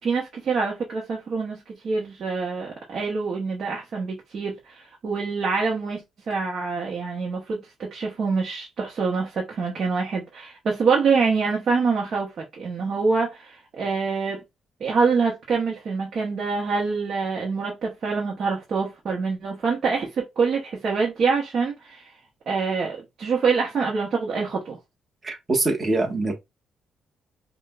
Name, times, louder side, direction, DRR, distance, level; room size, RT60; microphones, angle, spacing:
voice 1, 0.0-14.4 14.8-22.1 22.5-24.8, right 4 dB, 55° right, 1.1 m, -25 dB
voice 2, 25.2-26.3, right 2 dB, 30° right, 1.4 m, -24 dB
5.0 x 2.4 x 2.4 m
cardioid pair, 90°, 0 cm